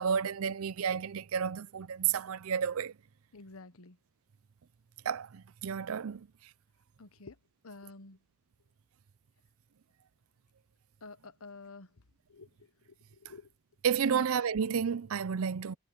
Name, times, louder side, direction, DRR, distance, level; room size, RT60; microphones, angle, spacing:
voice 1, 0.0-2.9 5.1-6.2 13.8-15.7, right 7 dB, 75° right, 0.5 m, -31 dB
voice 2, 3.3-3.9 7.0-7.3 7.6-8.2 11.0-11.9 12.3-12.5 13.2-13.4 14.1-14.2, left 3 dB, 75° left, 1.0 m, -48 dB
head